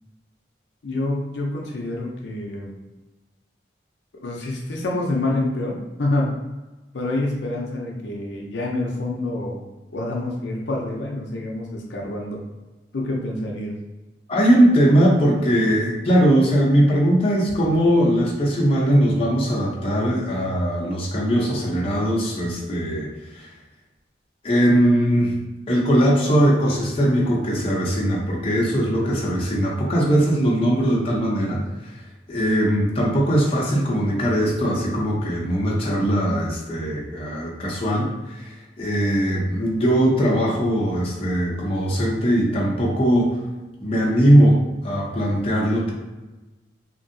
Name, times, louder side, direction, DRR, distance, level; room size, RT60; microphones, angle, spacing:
voice 1, 0.8-2.8 4.1-6.4 6.9-9.6 9.9-12.4 12.9-13.7, left 2 dB, 75° left, -1 dB, 0.5 m, -27 dB
voice 2, 14.3-23.1 23.3-23.5 24.4-25.3 25.7-31.9 32.3-43.4 43.8-45.9, equal, 30° left, -4 dB, 0.6 m, -20 dB
2.9 x 2.6 x 2.6 m, 1.1 s
head